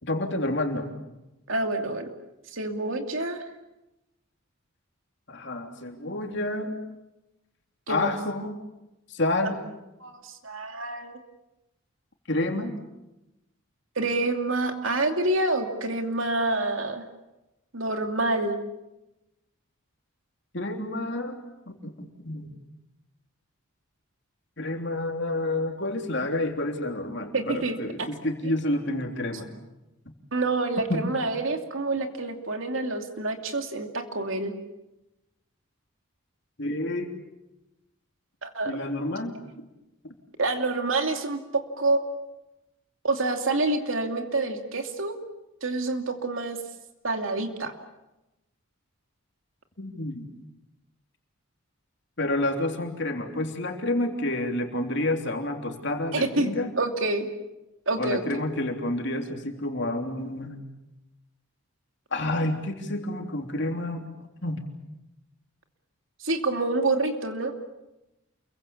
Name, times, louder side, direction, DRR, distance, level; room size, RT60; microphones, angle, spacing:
voice 1, 0.0-0.9 5.3-6.8 7.9-8.5 9.1-9.6 12.3-12.7 20.5-21.4 21.7-22.5 24.6-29.5 30.9-31.1 36.6-37.1 38.6-39.4 49.8-50.3 52.2-56.7 58.0-60.6 62.1-64.1 64.4-64.7, left 1 dB, 55° left, 3 dB, 3.4 m, -29 dB
voice 2, 1.5-2.1 2.5-3.4 7.9-8.1 10.0-11.2 14.0-17.0 17.7-18.6 27.3-27.8 28.4-28.5 30.3-34.5 38.4-38.8 40.4-42.0 43.0-45.2 45.6-46.6 47.0-47.7 56.1-57.3 57.9-58.4 66.2-67.5, right 2 dB, 70° right, 5 dB, 2.6 m, -27 dB
28.5 x 23.5 x 7.2 m, 0.96 s
head